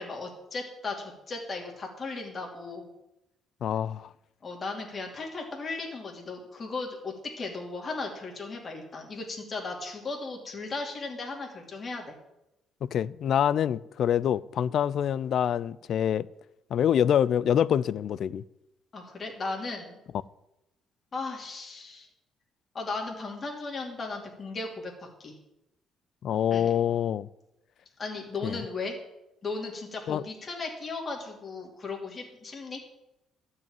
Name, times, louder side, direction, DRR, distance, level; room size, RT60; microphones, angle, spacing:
voice 1, 0.0-2.9 4.4-12.2 18.9-19.9 21.1-22.1 22.7-25.4 26.5-26.7 28.0-29.0 29.4-32.8, left 3 dB, 30° left, 2.6 m, -36 dB
voice 2, 3.6-4.1 12.8-16.3 16.7-18.4 26.2-27.3 28.4-28.6 30.1-30.2, left 9 dB, 55° left, 0.4 m, -26 dB
12.5 x 5.6 x 8.9 m
cardioid pair, 135°, 0 cm